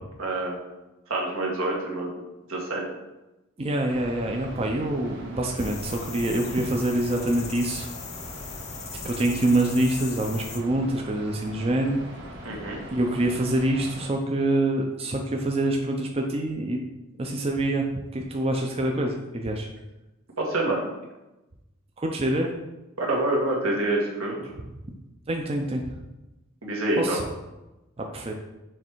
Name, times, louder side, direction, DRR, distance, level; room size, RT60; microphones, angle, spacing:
voice 1, 0.2-0.6 1.1-2.2 2.5-2.8 12.4-12.8 20.4-20.8 23.0-24.4 26.6-27.2, right 2 dB, 90° right, -2 dB, 1.5 m, -26 dB
voice 2, 3.6-7.9 9.0-12.0 12.9-16.8 17.2-19.7 22.0-22.5 24.4-24.5 25.3-25.9 27.0-27.2 28.1-28.3, right 1 dB, 30° right, 2 dB, 0.5 m, -26 dB
sound 1, 3.9-14.1, equal, 55° right, 1.2 m, -42 dB
sound 2, 5.6-10.6, left 5 dB, 30° left, 0.5 m, -38 dB
6.5 x 3.2 x 4.5 m, 1.0 s
head